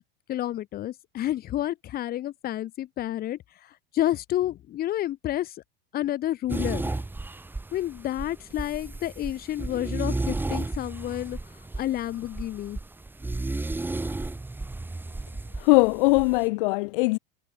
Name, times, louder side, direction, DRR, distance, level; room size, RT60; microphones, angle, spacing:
voice 1, 0.3-3.4 3.9-5.5 5.9-6.8 7.7-11.4 11.8-12.8, left 13 dB, 30° left, 1.5 m, -29 dB
sound 1, 6.5-16.5, right 2 dB, 5° right, 3.0 m, -33 dB
voice 2, 15.6-17.2, left 26 dB, 60° left, 0.5 m, -21 dB
supercardioid pair, 145°, 30 cm